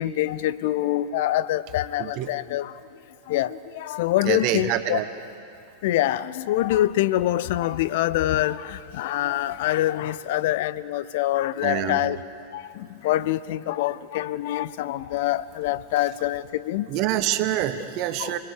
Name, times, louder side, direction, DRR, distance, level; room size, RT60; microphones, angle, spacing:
voice 1, 0.0-2.7 3.3-5.0 5.8-12.2 13.0-16.9 18.2-18.3, left 14 dB, 50° left, 0.6 m, -25 dB
voice 2, 2.0-2.3 4.2-5.1 11.6-12.2 16.9-18.4, right 12 dB, 40° right, 1.3 m, -26 dB
28.0 x 20.5 x 6.8 m
figure-of-eight pair, 90°, 0 cm